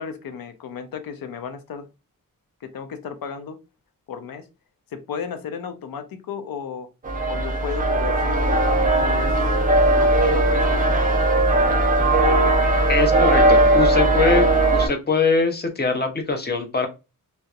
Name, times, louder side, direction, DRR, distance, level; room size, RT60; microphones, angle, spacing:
voice 1, 0.0-1.9 2.6-3.6 4.1-4.5 4.9-6.9 7.3-8.6 9.0-9.5 9.9-12.3 13.0-13.3 13.6-13.7, left 7 dB, 90° left, 0.6 m, -34 dB
sound 1, 7.0-14.9, right 2 dB, 25° right, 0.5 m, -18 dB
voice 2, 12.9-14.5 14.7-16.9, left 4 dB, 30° left, 0.6 m, -22 dB
2.8 x 2.0 x 2.3 m
wide cardioid pair, 135°, 34 cm